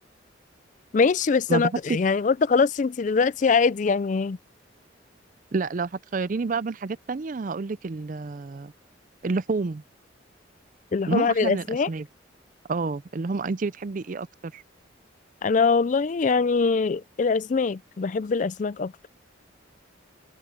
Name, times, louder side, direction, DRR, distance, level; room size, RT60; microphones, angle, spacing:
voice 1, 0.9-4.4 10.9-11.9 15.4-18.9, left 4 dB, 40° left, 0.4 m, -23 dB
voice 2, 5.5-8.7 9.2-9.8 11.1-12.0 12.7-14.3 14.5-14.6, right 4 dB, 45° right, 0.4 m, -29 dB
head